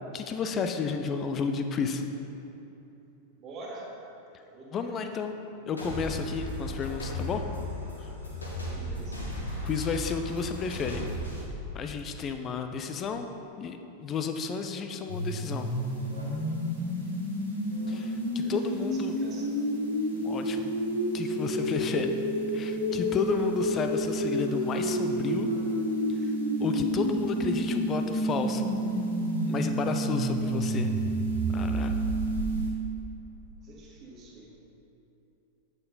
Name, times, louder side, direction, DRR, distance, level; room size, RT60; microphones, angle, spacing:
voice 1, 0.1-2.0 4.7-5.3 5.7-7.4 8.0-8.1 9.6-11.1 11.7-13.3 13.6-15.7 17.9-19.2 20.1-20.7 21.1-22.1 22.5-25.5 26.6-28.7 29.5-30.9 31.5-32.0, left 5 dB, 30° left, 7 dB, 0.5 m, -32 dB
voice 2, 3.4-3.9 4.5-5.0 8.3-9.2 18.4-19.6 20.5-20.6 21.6-21.8 26.1-26.3 33.6-34.5, right 2 dB, 30° right, -3 dB, 1.8 m, -47 dB
sound 1, 5.8-11.4, left 1 dB, 80° left, 1.6 m, -35 dB
sound 2, 15.1-32.7, right 1 dB, 85° right, 1.7 m, -29 dB
8.7 x 6.2 x 4.0 m, 2.9 s
figure-of-eight pair, 90°, 0 cm